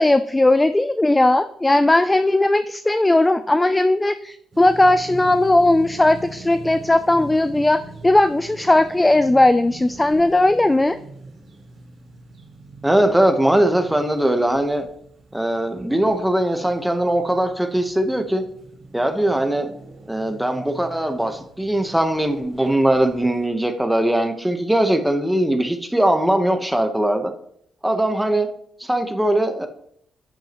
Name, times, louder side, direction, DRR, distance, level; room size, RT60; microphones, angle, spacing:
voice 1, 0.0-11.0, left 2 dB, 10° left, 11 dB, 0.3 m, -17 dB
sound 1, 4.5-23.5, right 2 dB, 40° right, 3.9 m, -42 dB
voice 2, 12.8-14.9 15.3-18.4 18.9-19.7 20.1-27.3 27.8-28.5 28.8-29.7, right 1 dB, 5° right, 5 dB, 1.0 m, -20 dB
12.5 x 9.3 x 3.0 m, 0.68 s
cardioid pair, 155°, 0 cm